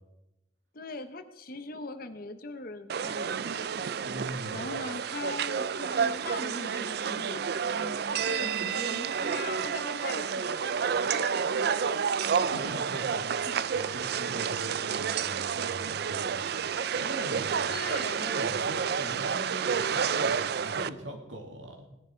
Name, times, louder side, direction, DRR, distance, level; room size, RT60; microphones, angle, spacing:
voice 1, 0.7-3.8 4.5-12.7 13.5-13.6 17.7-18.4 19.0-19.2, left 2 dB, 50° left, 10 dB, 0.9 m, -41 dB
sound 1, 2.9-20.9, right 6 dB, 55° right, 0.4 m, -30 dB
voice 2, 4.0-4.7 12.3-17.8 18.2-21.9, right 1 dB, 85° right, 3 dB, 2.5 m, -42 dB
18.0 x 10.5 x 4.5 m, 0.94 s
head